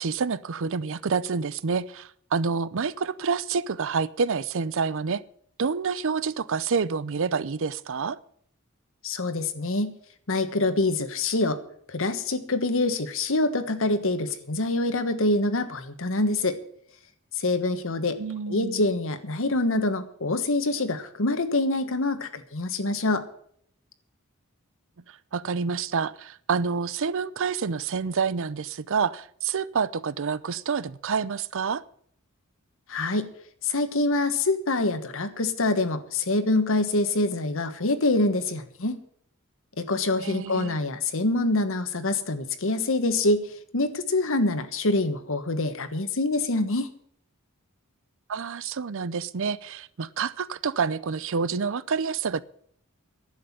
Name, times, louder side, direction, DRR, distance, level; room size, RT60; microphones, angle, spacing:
voice 1, 0.0-5.2 5.6-8.2 18.2-18.8 25.1-31.8 40.2-40.8 48.3-52.4, right 5 dB, 65° right, 0.6 m, -28 dB
voice 2, 9.0-9.9 10.3-11.6 11.9-16.6 17.4-18.2 18.5-23.2 32.9-33.3 33.6-39.0 39.8-43.4 43.7-46.9, left 2 dB, 65° left, 1.4 m, -25 dB
11.5 x 7.9 x 9.9 m
head